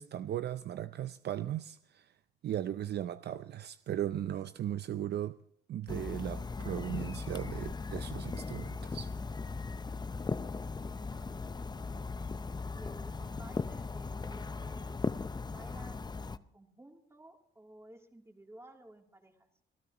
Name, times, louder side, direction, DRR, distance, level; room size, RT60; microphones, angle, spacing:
voice 1, 0.0-2.1 2.4-5.4 5.7-9.1, right 11 dB, 55° right, 0.5 m, -37 dB
sound 1, 5.9-16.4, left 4 dB, 20° left, 0.6 m, -38 dB
voice 2, 10.9-12.2 12.7-19.5, right 1 dB, 15° right, 3.0 m, -55 dB
26.0 x 15.0 x 3.0 m
cardioid pair, 90°, 20 cm